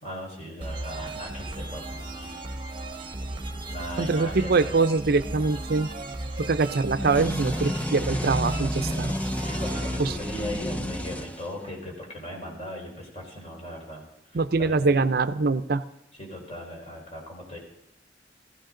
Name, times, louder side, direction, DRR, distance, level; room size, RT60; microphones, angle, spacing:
voice 1, 0.0-2.4 3.7-4.7 9.4-15.0 16.2-17.6, equal, 35° left, -1 dB, 4.4 m, -38 dB
sound 1, 0.6-11.2, right 2 dB, 30° right, 1.0 m, -36 dB
voice 2, 4.0-5.9 6.4-9.2 10.0-10.1 14.3-15.8, right 3 dB, 60° right, 13 dB, 0.6 m, -23 dB
sound 2, 7.0-11.9, equal, 10° left, 0.6 m, -31 dB
16.5 x 15.0 x 3.8 m, 0.87 s
head